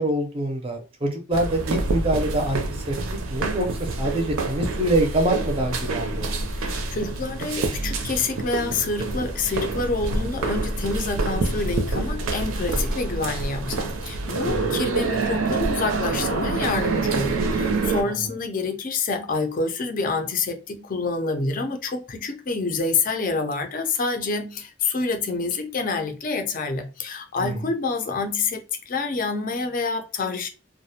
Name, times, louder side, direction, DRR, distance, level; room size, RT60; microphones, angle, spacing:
voice 1, 0.0-3.0 3.3-6.3 14.5-14.8 27.4-27.6, right 1 dB, 25° right, 0.5 m, -25 dB
sound 1, 1.3-18.0, right 3 dB, 80° right, 0.5 m, -27 dB
voice 2, 6.6-30.5, left 4 dB, 40° left, 0.4 m, -27 dB
2.3 x 2.1 x 2.7 m
head